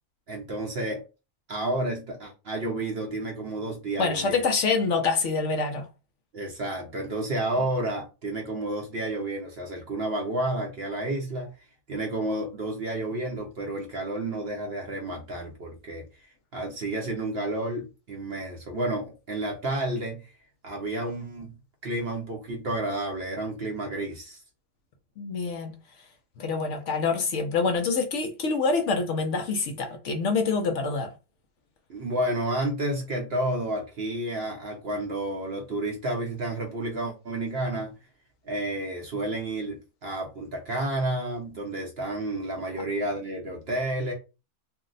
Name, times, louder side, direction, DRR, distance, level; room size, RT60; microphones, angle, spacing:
voice 1, 0.3-1.0 1.5-4.4 6.3-11.5 11.9-16.0 16.5-20.3 20.6-21.5 21.8-24.4 31.9-37.9 38.4-44.1, right 1 dB, 55° right, 0.7 m, -31 dB
voice 2, 4.0-5.9 25.2-25.8 26.4-31.1, left 4 dB, 65° left, 0.8 m, -26 dB
2.6 x 2.0 x 3.8 m
omnidirectional pair, 1.5 m